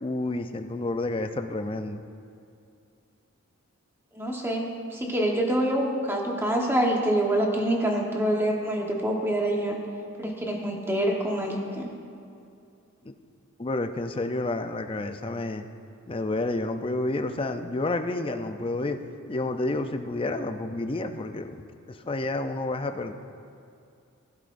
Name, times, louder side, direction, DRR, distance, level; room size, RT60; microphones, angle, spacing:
voice 1, 0.0-2.0 13.0-13.1 13.6-15.7 16.1-19.0 19.3-21.5 21.9-23.1, left 2 dB, 25° left, 7 dB, 0.5 m, -30 dB
voice 2, 4.1-9.8 10.2-11.9, right 1 dB, 10° right, -1 dB, 1.1 m, -26 dB
15.5 x 11.5 x 2.6 m, 2.5 s
head